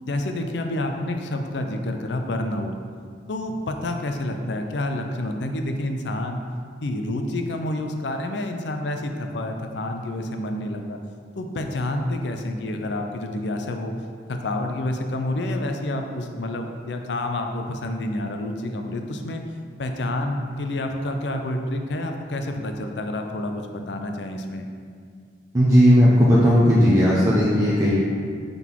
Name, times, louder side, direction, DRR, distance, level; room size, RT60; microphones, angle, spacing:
voice 1, 0.0-2.7 3.3-6.4 6.8-11.0 11.3-13.9 14.3-19.4 19.8-24.7, left 1 dB, 75° left, 5 dB, 0.5 m, -28 dB
voice 2, 25.5-27.9, equal, 20° right, -7 dB, 0.7 m, -16 dB
5.7 x 3.9 x 4.6 m, 2.1 s
head